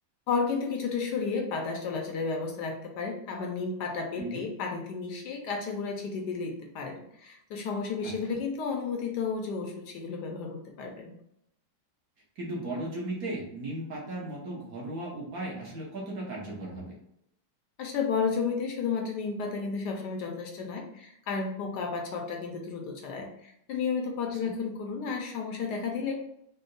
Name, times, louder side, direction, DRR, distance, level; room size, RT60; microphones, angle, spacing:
voice 1, 0.3-11.1 17.8-26.1, left 5 dB, 70° left, 3 dB, 1.1 m, -32 dB
voice 2, 4.2-4.5 8.0-8.1 12.4-16.9 24.4-24.5, right 1 dB, 55° right, -3 dB, 1.5 m, -36 dB
4.2 x 2.2 x 3.8 m, 0.78 s
omnidirectional pair, 2.0 m